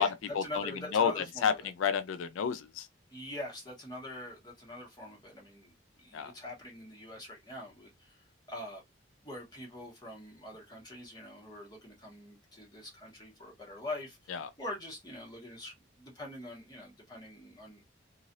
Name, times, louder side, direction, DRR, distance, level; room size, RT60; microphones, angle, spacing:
voice 1, 0.0-1.7 3.1-8.8 9.2-17.8, left 1 dB, 20° left, 1.2 m, -44 dB
voice 2, 0.9-2.9 6.1-6.3 14.3-14.5, left 7 dB, 85° left, 0.3 m, -30 dB
3.1 x 2.4 x 2.6 m
head